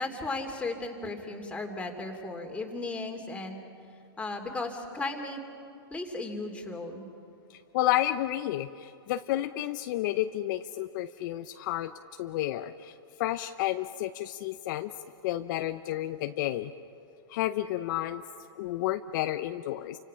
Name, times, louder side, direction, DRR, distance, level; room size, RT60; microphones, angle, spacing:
voice 1, 0.0-3.6 4.2-5.4 5.9-7.1, left 2 dB, 10° left, 3 dB, 2.7 m, -35 dB
voice 2, 7.5-11.9 12.2-14.9 15.2-16.7 17.3-18.2 18.6-20.0, left 14 dB, 50° left, 9 dB, 0.7 m, -31 dB
29.5 x 25.5 x 5.7 m, 2.6 s
hypercardioid pair, 130°, 13 cm